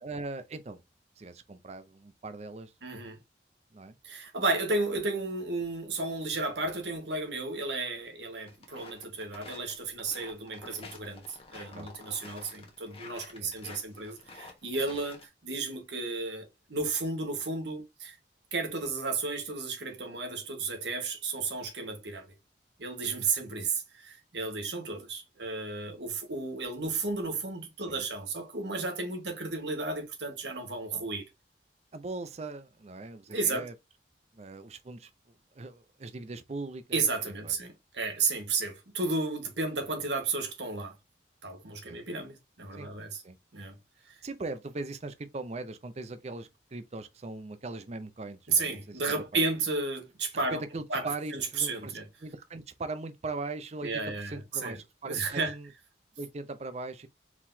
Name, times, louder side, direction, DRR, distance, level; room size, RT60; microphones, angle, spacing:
voice 1, 0.0-0.8 1.2-2.7 3.7-4.0 11.7-11.9 13.4-13.5 14.9-15.0 27.9-28.0 31.9-33.7 34.3-35.1 35.5-37.6 41.8-42.0 42.7-42.9 43.2-43.4 44.2-48.8 49.1-49.4 50.3-53.9 54.2-55.7 56.2-57.1, right 3 dB, 40° right, 0.5 m, -40 dB
voice 2, 2.8-3.2 4.0-18.2 18.5-22.3 22.8-31.3 33.3-33.7 36.9-41.0 41.4-43.2 43.5-43.8 44.1-44.2 48.5-50.6 50.9-51.1 51.3-52.0 53.8-54.8 55.0-55.5, right 3 dB, 80° right, 1.4 m, -33 dB
sound 1, 8.5-15.3, left 3 dB, 35° left, 1.1 m, -50 dB
4.7 x 3.8 x 2.7 m
head